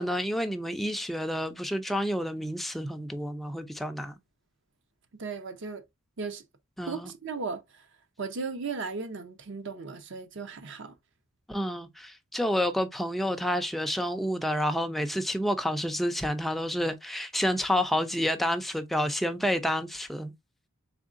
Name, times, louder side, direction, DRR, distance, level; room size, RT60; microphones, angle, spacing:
voice 1, 0.0-4.2 6.8-7.1 11.5-20.3, equal, ahead, 0.3 m, -29 dB
voice 2, 5.2-5.8 6.2-6.4 6.9-7.6 8.2-10.9, right 4 dB, 60° right, 0.7 m, -36 dB
3.6 x 3.6 x 2.5 m
head